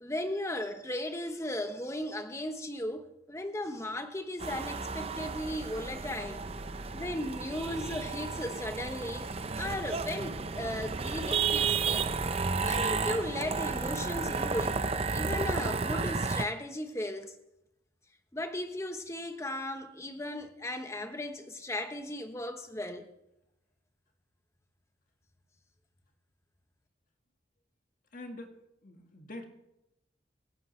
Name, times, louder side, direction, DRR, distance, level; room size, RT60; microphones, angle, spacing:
voice 1, 0.0-6.4 6.9-9.3 9.6-12.1 12.6-14.8 15.1-17.3 18.3-23.1, left 1 dB, 15° left, 1.1 m, -36 dB
sound 1, 4.4-16.5, right 4 dB, 35° right, 0.6 m, -32 dB
voice 2, 28.1-29.4, left 1 dB, 45° left, 1.9 m, -45 dB
25.5 x 11.0 x 3.3 m
head